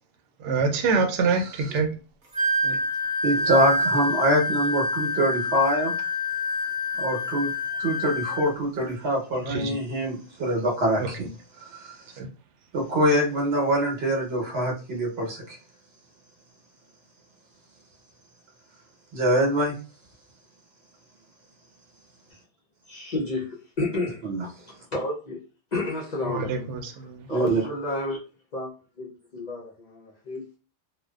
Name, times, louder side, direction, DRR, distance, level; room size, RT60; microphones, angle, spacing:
voice 1, 0.4-1.9 2.6-2.8 9.4-9.8 11.0-11.1 12.2-12.3 26.3-27.2, right 4 dB, 85° right, 0.9 m, -26 dB
Wind instrument woodwind instrument, 2.3-8.5, left 1 dB, 40° right, 0.6 m, -27 dB
voice 2, 3.2-5.9 7.0-7.5 7.8-11.3 11.6-12.0 12.7-15.6 19.1-19.7 24.2-24.4 27.3-27.6, right 1 dB, 65° right, 1.1 m, -24 dB
voice 3, 22.9-24.3 24.6-25.4 25.7-26.7 27.3-28.2 28.5-28.7 29.0-30.4, left 2 dB, 50° left, 0.5 m, -31 dB
2.5 x 2.1 x 2.2 m
omnidirectional pair, 1.2 m